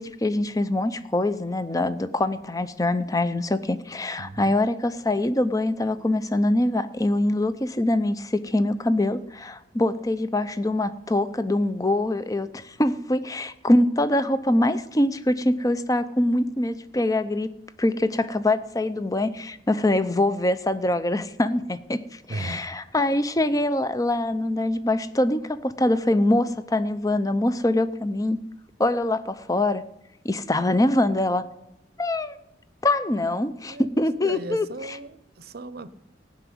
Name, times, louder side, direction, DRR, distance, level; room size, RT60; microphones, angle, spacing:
voice 1, 0.0-17.5 17.8-28.4 28.8-29.8 30.2-31.4 32.0-32.4 32.8-35.0, left 1 dB, 20° left, 13 dB, 0.6 m, -24 dB
voice 2, 4.2-4.6 22.3-22.7 33.1-33.2 33.6-33.9 34.2-35.9, right 2 dB, 50° right, 15 dB, 0.7 m, -36 dB
15.5 x 6.1 x 9.3 m, 0.86 s
head